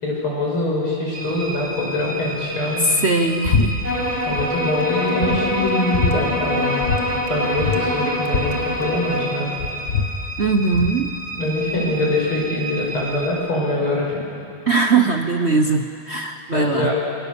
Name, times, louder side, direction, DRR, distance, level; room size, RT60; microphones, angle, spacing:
voice 1, 0.0-2.8 4.3-6.9 7.3-9.5 11.4-14.2 16.5-16.9, left 2 dB, 75° left, -3 dB, 7.6 m, -23 dB
sound 1, 1.1-13.3, right 1 dB, 10° left, 4.4 m, -32 dB
voice 2, 2.8-3.8 10.4-11.1 14.7-16.9, right 4 dB, 55° right, 5 dB, 0.7 m, -20 dB
sound 2, 3.4-3.7 3.9-4.5 4.9-5.0 5.2-6.2 6.8-7.0 7.3-7.4 7.6-9.2 9.6-11.0, left 5 dB, 35° left, 1.6 m, -23 dB
sound 3, 3.8-9.3, equal, 30° right, 8.1 m, -25 dB
27.5 x 24.0 x 7.0 m, 2.6 s
omnidirectional pair, 2.4 m